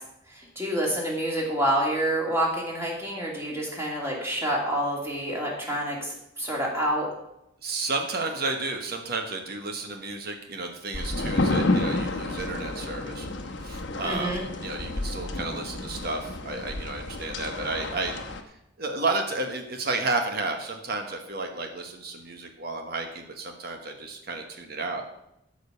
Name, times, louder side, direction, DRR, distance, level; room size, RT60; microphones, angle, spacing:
voice 1, 0.3-7.1 14.0-14.4, right 1 dB, 15° right, -3 dB, 2.6 m, -28 dB
voice 2, 7.6-25.0, right 3 dB, 50° right, 4 dB, 1.2 m, -32 dB
sound 1, 10.9-18.4, left 2 dB, 60° left, 1.1 m, -30 dB
13.0 x 5.2 x 6.9 m, 0.83 s
head